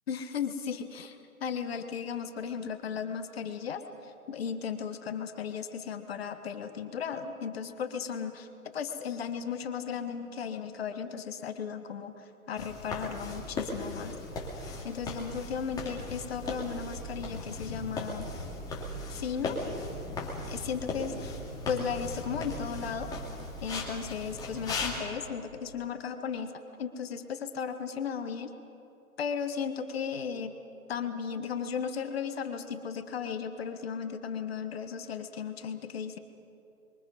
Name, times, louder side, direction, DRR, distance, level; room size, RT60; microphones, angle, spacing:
voice 1, 0.1-8.5 8.7-14.2 14.8-18.3 19.1-19.6 20.5-23.1 23.6-26.5 26.8-28.5 29.2-30.5 30.9-36.2, left 7 dB, 45° left, 8 dB, 1.5 m, -35 dB
sound 1, 12.6-25.0, left 2 dB, 10° left, 2.5 m, -37 dB
27.0 x 23.0 x 5.5 m, 2.8 s
figure-of-eight pair, 135°, 43 cm